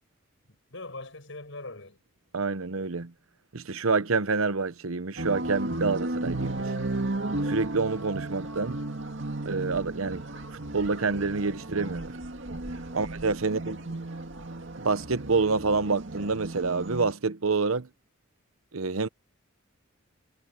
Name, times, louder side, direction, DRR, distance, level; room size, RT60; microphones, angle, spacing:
voice 1, 0.5-2.0 12.9-13.1 13.4-14.1, left 2 dB, 65° left, 7.7 m, -43 dB
voice 2, 2.3-3.1 3.5-6.7 7.4-8.8 9.4-10.2 10.7-12.1 12.9-13.8 14.8-17.9 18.7-19.1, right 4 dB, 90° right, 0.9 m, -27 dB
sound 1, 5.2-17.1, right 2 dB, 60° right, 2.2 m, -34 dB
head